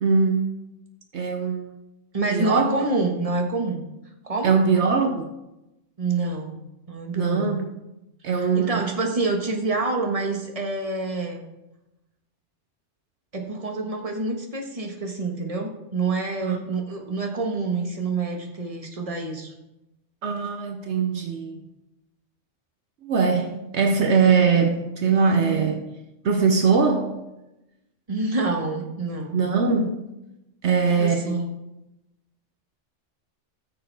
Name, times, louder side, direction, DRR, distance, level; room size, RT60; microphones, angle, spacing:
voice 1, 0.0-0.5 1.1-1.7 2.3-2.7 4.4-5.3 7.1-7.7 8.2-8.8 16.4-16.6 20.2-21.6 23.0-25.9 26.2-27.2 29.3-30.1 30.6-31.4, right 5 dB, 65° right, 3 dB, 1.1 m, -21 dB
voice 2, 2.1-3.8 4.2-4.6 6.0-6.6 6.9-7.6 8.3-11.4 13.3-19.5 28.1-29.4 30.6-31.5, right 3 dB, 30° right, 1 dB, 1.4 m, -27 dB
14.0 x 6.7 x 3.5 m, 0.92 s
omnidirectional pair, 1.3 m